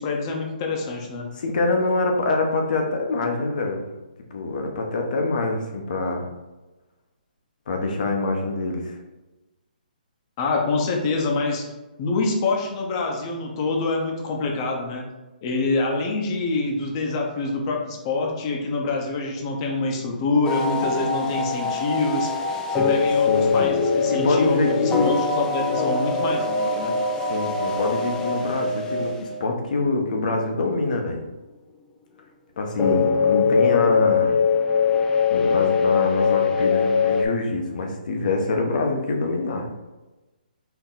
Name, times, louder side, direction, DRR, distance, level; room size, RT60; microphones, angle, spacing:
voice 1, 0.0-1.3 10.4-11.6 12.0-15.0 15.4-22.3 22.8-26.9, left 3 dB, 30° left, 1 dB, 0.9 m, -26 dB
voice 2, 1.4-3.9 4.3-6.3 7.7-9.0 23.3-23.5 24.1-25.2 27.3-31.2 32.6-34.4 35.3-39.7, left 3 dB, 60° left, 3 dB, 1.0 m, -25 dB
sound 1, 20.4-29.6 32.8-37.3, left 5 dB, 15° left, 0.4 m, -22 dB
4.6 x 2.9 x 3.9 m, 1.1 s
hypercardioid pair, 150°, 5 cm